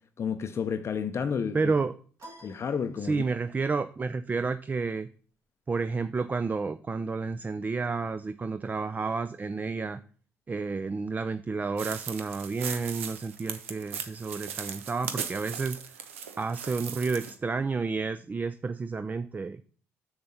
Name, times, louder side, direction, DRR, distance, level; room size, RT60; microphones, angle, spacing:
voice 1, 0.2-1.7 2.4-3.2, left 6 dB, 40° left, 0.6 m, -31 dB
voice 2, 1.5-1.9 3.0-5.1 5.7-10.0 10.5-15.8 16.4-19.7, right 4 dB, 25° right, 0.4 m, -30 dB
sound 1, 2.2-3.6, right 1 dB, 45° right, 2.2 m, -51 dB
sound 2, 11.8-17.3, right 8 dB, 80° right, 0.6 m, -38 dB
6.9 x 6.5 x 4.1 m
figure-of-eight pair, 45°, 7 cm